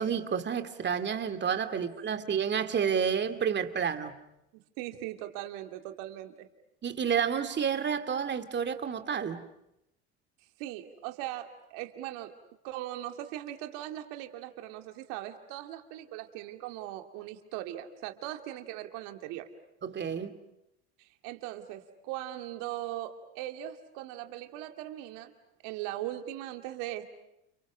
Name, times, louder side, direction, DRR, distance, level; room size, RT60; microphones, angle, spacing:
voice 1, 0.0-4.2 6.8-9.4 19.8-20.4, right 7 dB, 30° right, 2.6 m, -30 dB
voice 2, 4.5-6.5 10.6-12.3 12.6-19.5 21.0-25.3 25.6-27.0, right 14 dB, 65° right, 2.7 m, -39 dB
30.0 x 29.5 x 6.3 m
hypercardioid pair, 80°, 34 cm